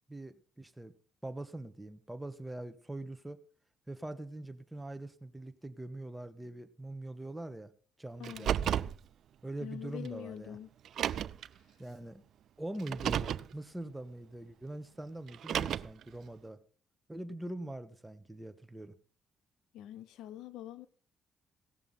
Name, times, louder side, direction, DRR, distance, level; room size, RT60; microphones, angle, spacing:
voice 1, 0.1-0.9 1.2-3.4 3.9-7.7 8.0-8.7 9.4-10.6 11.8-12.2 12.6-16.6 17.1-18.9, right 1 dB, 10° right, 1.4 m, -43 dB
voice 2, 8.2-8.6 9.6-10.7 19.7-20.9, left 12 dB, 90° left, 0.8 m, -45 dB
Car, 8.2-9.0 10.1-10.2 10.9-11.5 12.8-13.5 15.3-16.0, right 10 dB, 70° right, 0.5 m, -32 dB
17.0 x 6.9 x 5.7 m
cardioid pair, 90°, 0 cm